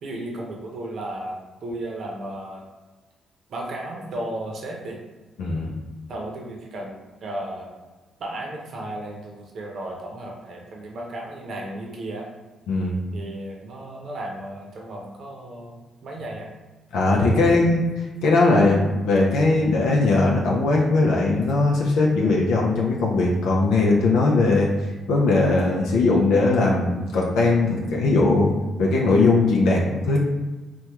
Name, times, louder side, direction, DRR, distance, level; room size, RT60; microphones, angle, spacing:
voice 1, 0.0-2.6 3.5-5.0 6.1-7.7 8.2-12.3 13.1-16.5 17.2-17.7, right 1 dB, 60° right, -1 dB, 0.7 m, -34 dB
voice 2, 5.4-5.7 12.7-13.0 16.9-17.8 18.2-24.7 25.1-28.5 28.8-30.2, left 3 dB, 90° left, -2 dB, 0.5 m, -19 dB
3.3 x 2.2 x 2.9 m, 1.2 s
cardioid pair, 85°, 0 cm